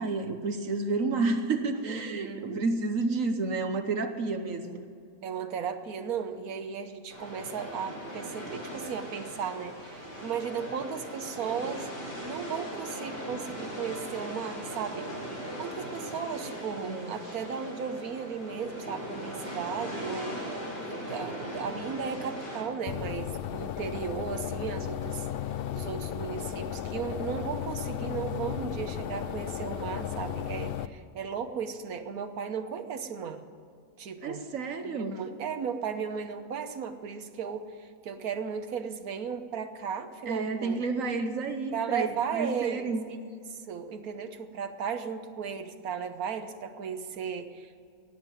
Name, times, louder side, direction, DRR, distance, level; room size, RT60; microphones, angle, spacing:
voice 1, 0.0-4.8 16.0-16.1 16.8-17.2 34.2-35.2 40.3-42.1 42.3-43.0, right 3 dB, 65° right, 7 dB, 1.4 m, -30 dB
voice 2, 1.8-2.6 4.6-4.8 5.2-11.9 12.2-15.1 15.6-20.4 20.8-25.3 25.7-33.4 34.0-34.4 34.8-40.8 41.7-43.2 43.7-47.8, right 6 dB, 80° right, 8 dB, 1.5 m, -35 dB
sound 1, 7.1-22.6, equal, 50° left, 5.1 m, -39 dB
sound 2, 22.9-30.9, left 10 dB, 65° left, 0.5 m, -35 dB
18.0 x 7.4 x 9.1 m, 2.4 s
omnidirectional pair, 1.5 m